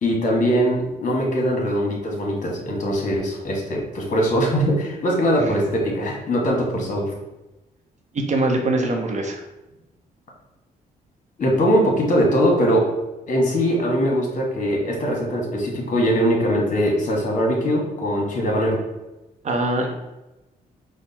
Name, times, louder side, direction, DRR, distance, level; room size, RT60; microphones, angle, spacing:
voice 1, 0.0-7.1 11.4-12.9 13.3-18.8, equal, 50° left, -1 dB, 1.4 m, -21 dB
voice 2, 8.1-9.4 19.4-19.9, right 2 dB, 45° right, 3 dB, 0.8 m, -22 dB
4.3 x 2.3 x 4.2 m, 1.0 s
cardioid pair, 80°, 17 cm